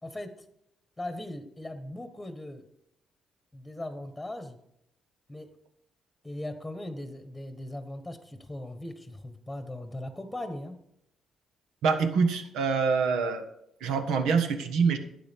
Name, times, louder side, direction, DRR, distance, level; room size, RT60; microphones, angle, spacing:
voice 1, 0.0-0.3 1.0-2.6 3.5-4.6 5.3-5.5 6.2-10.8, left 1 dB, 5° left, 8 dB, 1.3 m, -39 dB
voice 2, 11.8-13.5 13.8-15.0, right 5 dB, 90° right, 7 dB, 1.4 m, -25 dB
11.5 x 8.5 x 3.6 m, 0.78 s
cardioid pair, 90°, 0 cm